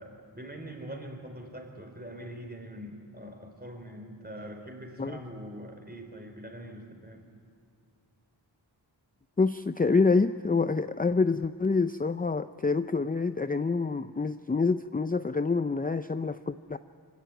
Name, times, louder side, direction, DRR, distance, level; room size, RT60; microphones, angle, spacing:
voice 1, 0.0-7.3, right 1 dB, 20° right, 4 dB, 3.9 m, -43 dB
voice 2, 9.4-16.8, left 4 dB, 20° left, 11 dB, 0.5 m, -27 dB
24.5 x 16.5 x 9.4 m, 2.5 s
wide cardioid pair, 55°, 43 cm